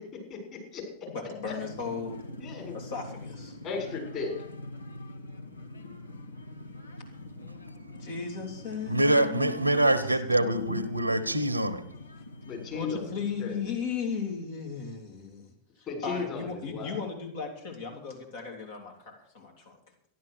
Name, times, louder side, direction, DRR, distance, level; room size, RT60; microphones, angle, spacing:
voice 1, 0.3-0.8 2.4-2.8 3.6-4.3 12.5-13.0 13.4-13.6 15.9-17.0, left 4 dB, 35° left, 6.5 m, -35 dB
voice 2, 1.1-2.2 2.7-3.6 8.0-9.6 10.4-10.6 12.7-19.8, left 5 dB, 55° left, 3.0 m, -36 dB
sound 1, 1.4-13.6, left 1 dB, 75° left, 1.2 m, -44 dB
voice 3, 8.9-11.9, right 1 dB, 85° right, 1.0 m, -25 dB
13.5 x 11.5 x 6.5 m
figure-of-eight pair, 90°, 0 cm